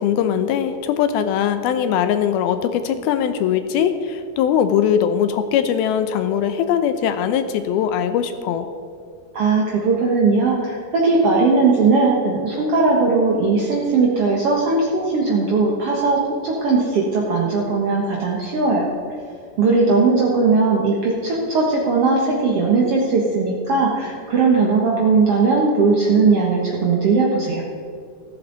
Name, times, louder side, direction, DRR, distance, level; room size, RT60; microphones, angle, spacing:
voice 1, 0.0-8.7, left 9 dB, 80° left, 10 dB, 2.4 m, -20 dB
voice 2, 9.3-18.9 19.6-27.6, right 4 dB, 65° right, -3 dB, 1.4 m, -18 dB
14.5 x 14.0 x 4.0 m, 2.4 s
omnidirectional pair, 4.8 m